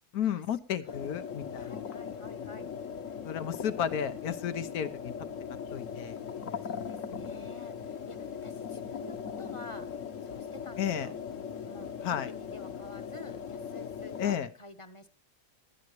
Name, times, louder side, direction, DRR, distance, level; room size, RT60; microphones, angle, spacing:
voice 1, 0.1-1.8 3.2-5.1 5.7-6.4 10.8-11.1 12.0-12.3 14.2-14.5, left 9 dB, 90° left, 10 dB, 1.4 m, -33 dB
sound 1, 0.9-14.4, left 7 dB, 60° left, 1.3 m, -39 dB
voice 2, 1.5-2.7 6.6-9.9 10.2-11.2 11.6-15.1, left 2 dB, 25° left, 11 dB, 0.8 m, -49 dB
20.0 x 12.0 x 3.1 m, 0.32 s
omnidirectional pair, 1.5 m